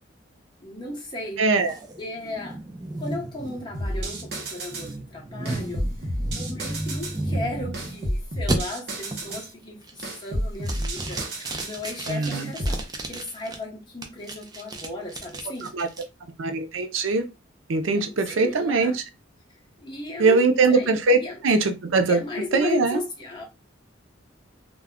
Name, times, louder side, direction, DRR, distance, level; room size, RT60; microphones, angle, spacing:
voice 1, 0.6-1.5 2.0-2.6 3.0-5.9 6.3-15.7 17.9-19.0 19.8-20.9 21.2-21.4 22.1-23.4, left 2 dB, 25° left, 0.8 m, -35 dB
voice 2, 1.4-1.7 12.1-12.5 15.7-15.9 16.4-17.3 17.7-18.9 20.2-22.2 22.5-23.0, right 3 dB, 85° right, 0.5 m, -21 dB
sound 1, 1.7-8.0 8.5-8.6 9.1-9.4 9.8-10.3 10.6-13.6 14.0-16.0, right 1 dB, 20° right, 0.4 m, -33 dB
sound 2, 3.7-4.9 5.5-7.2 7.7-9.5 10.0-11.8 12.3-12.8, right 1 dB, 55° right, 0.8 m, -30 dB
2.3 x 2.1 x 3.5 m
head